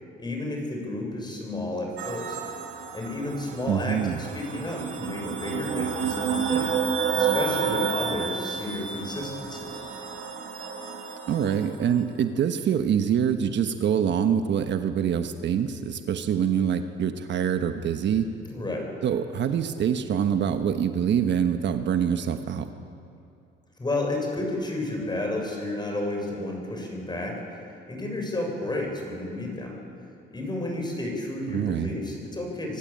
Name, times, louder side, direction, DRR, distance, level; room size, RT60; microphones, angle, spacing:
voice 1, 0.2-2.4 2.9-6.7 7.1-9.6 18.5-18.9 23.8-27.6 27.9-29.8 30.3-32.8, left 2 dB, 20° left, 1 dB, 6.7 m, -31 dB
sound 1, 2.0-11.7, right 6 dB, 90° right, 2.8 m, -30 dB
voice 2, 3.7-4.3 11.3-18.3 19.0-22.7 31.5-31.9, right 8 dB, 65° right, 8 dB, 1.2 m, -25 dB
25.0 x 15.0 x 8.8 m, 2.6 s
cardioid pair, 90°, 20 cm